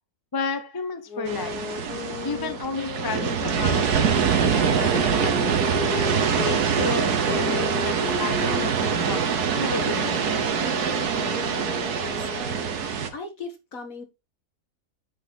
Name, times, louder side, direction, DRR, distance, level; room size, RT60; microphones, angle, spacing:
voice 1, 0.3-1.6 2.2-5.8 6.4-9.3 9.6-10.4, left 3 dB, 15° left, 0.9 m, -32 dB
sound 1, 1.1-6.6 7.2-12.8, left 8 dB, 90° left, 1.7 m, -36 dB
sound 2, 1.3-13.1, right 7 dB, 85° right, 1.8 m, -24 dB
voice 2, 11.7-12.7 13.1-14.0, left 3 dB, 60° left, 2.1 m, -39 dB
9.5 x 5.4 x 4.1 m
omnidirectional pair, 1.6 m